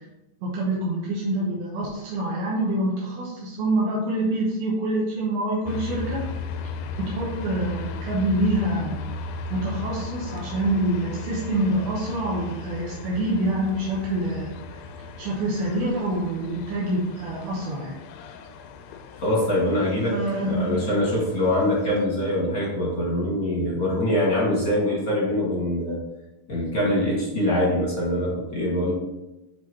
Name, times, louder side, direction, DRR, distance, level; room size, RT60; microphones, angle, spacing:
voice 1, 0.4-6.2 7.0-9.0 9.5-14.5 15.2-18.0 20.1-20.9, right 1 dB, 75° right, -4 dB, 2.9 m, -26 dB
sound 1, 5.7-22.1, left 3 dB, 80° left, 2.3 m, -36 dB
voice 2, 19.2-20.2 20.4-26.0 26.5-28.9, left 1 dB, 40° left, -5 dB, 1.3 m, -23 dB
10.0 x 4.6 x 3.0 m, 0.98 s
omnidirectional pair, 4.6 m